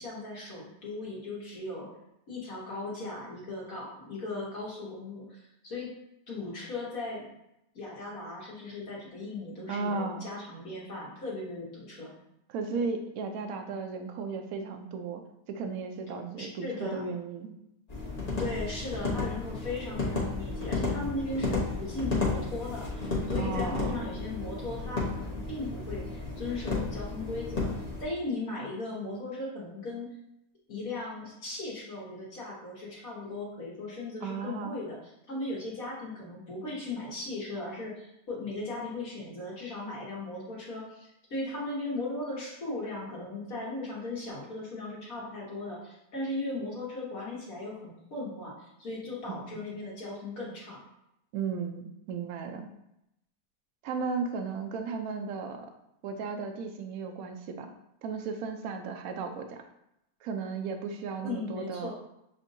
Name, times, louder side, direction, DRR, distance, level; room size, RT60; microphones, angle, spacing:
voice 1, 0.0-1.9 2.3-5.9 6.3-7.3 7.7-12.1 16.4-17.0 18.4-27.7 28.0-30.1 30.7-35.0 35.3-50.8 61.2-61.9, left 2 dB, 55° left, -5 dB, 1.5 m, -37 dB
voice 2, 9.7-10.3 12.5-15.2 15.5-17.5 23.4-24.1 34.2-34.8 49.5-49.6 51.3-52.7 53.8-55.7 56.0-57.7 58.0-59.6 60.2-61.9, right 5 dB, 70° right, 5 dB, 0.8 m, -35 dB
sound 1, 17.9-28.0, left 3 dB, 30° left, 0.9 m, -33 dB
7.1 x 2.6 x 2.6 m, 0.82 s
omnidirectional pair, 2.0 m